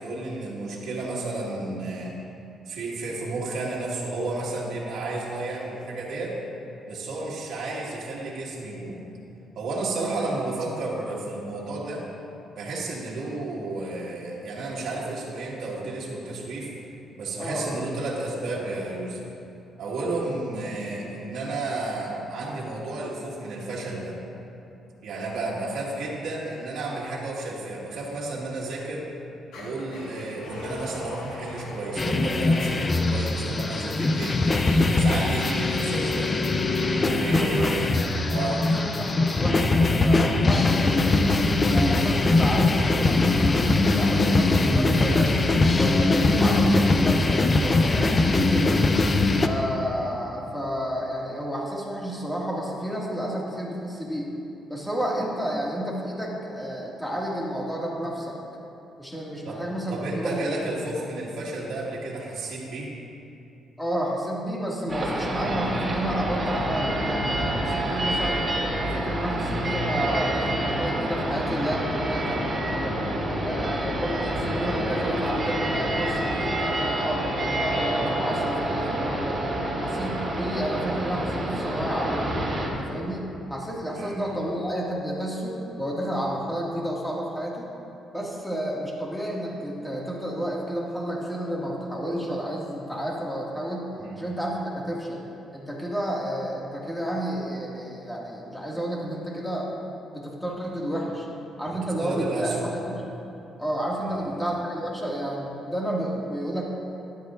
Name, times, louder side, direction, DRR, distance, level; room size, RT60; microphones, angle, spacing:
voice 1, 0.0-2.1 2.7-6.4 6.9-9.1 9.6-12.1 12.6-16.7 17.2-19.3 19.8-24.2 25.0-29.1 29.6-34.4 34.9-36.4 36.9-38.0 38.3-38.7 59.4-59.6 59.9-62.9 83.9-84.2 84.5-84.6 94.0-94.2 101.7-102.7 104.0-104.4, right 2 dB, 70° right, -5 dB, 1.9 m, -32 dB
voice 2, 17.4-17.8 37.3-38.7 39.0-41.4 41.7-45.4 45.7-48.8 49.4-54.3 54.7-58.4 59.0-60.5 63.8-68.4 68.8-72.9 73.4-79.4 79.8-82.3 82.8-83.2 83.5-87.7 88.1-93.9 94.1-95.2 95.5-99.8 100.1-101.3 101.6-103.0 103.6-106.6, equal, 5° left, -4 dB, 2.1 m, -31 dB
sound 1, 29.5-39.7, left 2 dB, 85° left, 1.7 m, -41 dB
sound 2, 32.0-49.5, left 2 dB, 30° left, 0.6 m, -21 dB
sound 3, 64.9-82.7, right 1 dB, 30° right, 2.5 m, -28 dB
13.0 x 11.5 x 2.6 m, 2.7 s
cardioid pair, 90°, 0 cm